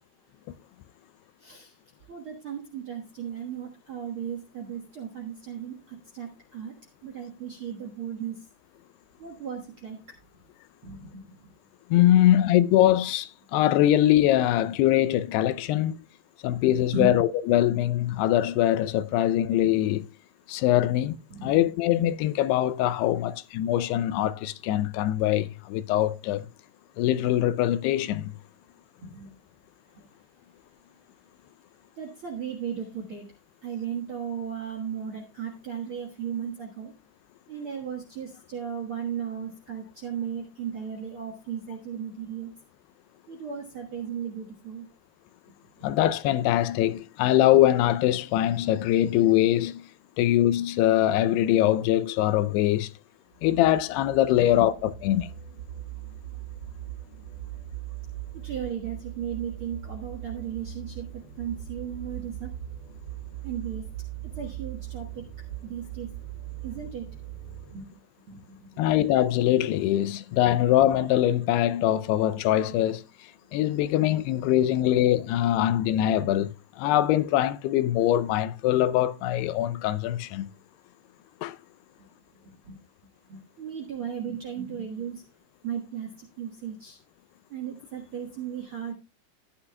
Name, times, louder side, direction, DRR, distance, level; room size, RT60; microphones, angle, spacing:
voice 1, 1.4-1.8 2.1-6.7 7.0-8.5 9.2-10.0 10.8-11.5 16.5-16.6 16.9-17.1 21.3-21.6 29.0-29.3 29.9-30.2 31.9-33.3 33.6-36.9 37.5-42.5 43.3-44.8 54.6-54.7 58.3-62.5 63.4-63.8 64.2-65.2 65.6-66.1 66.6-67.1 67.7-67.9 68.3-68.9 82.6-82.8 83.3-85.3 85.6-87.0 87.5-88.9, right 7 dB, 65° right, 1.3 m, -36 dB
voice 2, 11.9-16.0 16.4-20.0 20.5-21.2 21.4-26.5 27.0-28.3 45.8-49.8 50.2-52.9 53.4-55.3 68.8-73.0 73.5-80.5 81.4-81.6, left 13 dB, 80° left, 2.6 m, -23 dB
sound 1, 53.3-67.8, right 12 dB, 40° right, 5.1 m, -40 dB
14.0 x 10.0 x 2.2 m
omnidirectional pair, 4.8 m